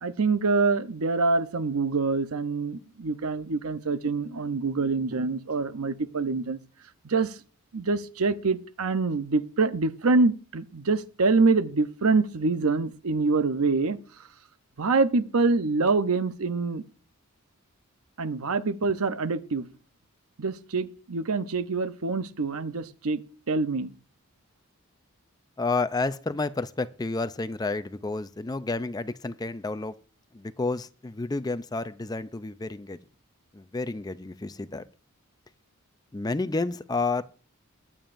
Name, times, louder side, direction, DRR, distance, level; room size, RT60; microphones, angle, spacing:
voice 1, 0.0-6.6 7.0-7.4 7.7-14.0 14.8-16.8 18.2-19.7 20.4-23.2 23.5-23.9, right 3 dB, 80° right, 0.7 m, -25 dB
voice 2, 25.6-29.9 30.3-33.0 33.5-34.8 36.1-37.2, left 3 dB, 20° left, 0.4 m, -30 dB
22.0 x 8.7 x 2.6 m
head